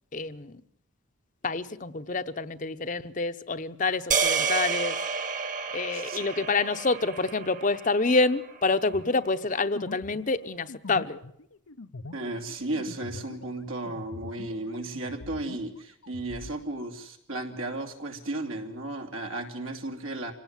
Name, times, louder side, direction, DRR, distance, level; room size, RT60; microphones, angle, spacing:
voice 1, 0.1-0.6 1.4-5.0 5.7-11.2, left 3 dB, 40° left, 10 dB, 0.8 m, -27 dB
sound 1, 4.1-8.5, right 5 dB, 40° right, 1.5 m, -30 dB
voice 2, 5.9-6.2 12.1-20.3, right 2 dB, 80° right, 3 dB, 3.0 m, -34 dB
sound 2, 8.9-14.7 14.9-16.5, left 3 dB, 90° left, 0.9 m, -44 dB
26.0 x 18.0 x 7.5 m, 0.74 s
head